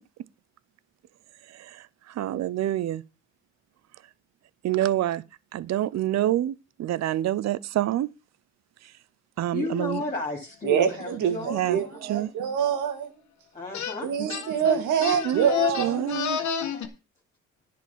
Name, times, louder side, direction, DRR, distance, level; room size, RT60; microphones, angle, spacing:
voice 1, 1.5-3.0 4.6-5.2 5.5-8.1 9.4-10.0 11.5-12.3 14.2-14.3 15.2-15.5 15.8-16.4, right 13 dB, 60° right, 0.6 m, -27 dB
voice 2, 9.5-12.3 13.5-14.1 14.6-16.9, left 3 dB, 25° left, 3.1 m, -35 dB
voice 3, 10.6-13.1 14.0-16.1, right 8 dB, 90° right, 2.0 m, -25 dB
sound 1, 13.7-14.0 14.3-16.9, left 9 dB, 70° left, 1.6 m, -29 dB
10.5 x 5.1 x 7.3 m
cardioid pair, 90°, 30 cm